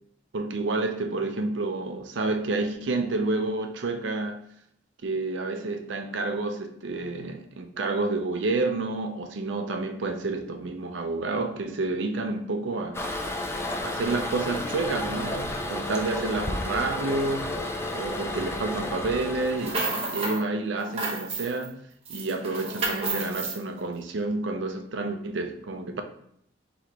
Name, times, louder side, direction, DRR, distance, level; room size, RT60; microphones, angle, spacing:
voice 1, 0.3-4.4 5.0-13.1 13.8-17.6 17.9-21.8 22.1-26.0, right 3 dB, 70° right, 5 dB, 0.5 m, -29 dB
Toilet flush, 12.9-20.0, left 1 dB, 15° left, 0.4 m, -32 dB
sound 1, 19.4-20.4 20.8-21.7 22.1-23.6, right 3 dB, 35° right, 0.9 m, -31 dB
3.0 x 2.9 x 4.5 m, 0.69 s
head